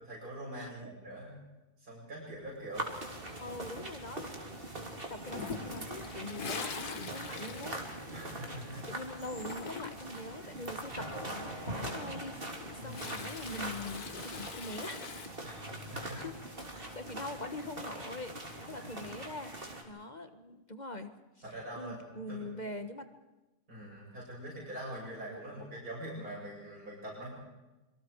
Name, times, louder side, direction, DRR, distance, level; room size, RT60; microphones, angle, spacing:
voice 1, 0.1-1.4 1.8-2.9 8.1-8.9 12.8-13.0 15.4-16.2 18.7-18.9 21.4-22.0 22.3-22.5 23.7-27.3, right 1 dB, 70° right, -4 dB, 8.5 m, -44 dB
sound 1, 2.7-19.8, right 1 dB, 35° right, 3.5 m, -42 dB
voice 2, 3.4-4.5 5.1-7.8 8.9-15.4 15.9-16.3 16.7-19.5 19.8-21.1 21.7-23.1 25.3-25.4, left 2 dB, 30° left, 9 dB, 1.7 m, -43 dB
Toilet flush, 5.3-8.7 9.0-10.2 12.2-15.3, left 5 dB, 70° left, 2.2 m, -44 dB
26.5 x 24.5 x 4.8 m, 1.1 s
omnidirectional pair, 1.7 m